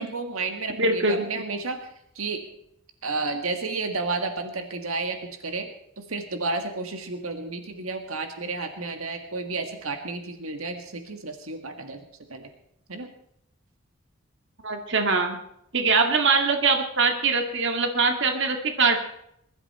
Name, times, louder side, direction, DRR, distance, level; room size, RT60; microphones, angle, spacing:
voice 1, 0.0-1.8 2.1-2.4 3.0-5.7 6.0-12.0 12.3-12.5 12.9-13.1, right 3 dB, 85° right, 6 dB, 1.8 m, -31 dB
voice 2, 0.8-1.3 14.6-15.4 15.7-19.0, right 4 dB, 55° right, 5 dB, 2.0 m, -22 dB
21.0 x 12.5 x 4.3 m, 0.74 s
head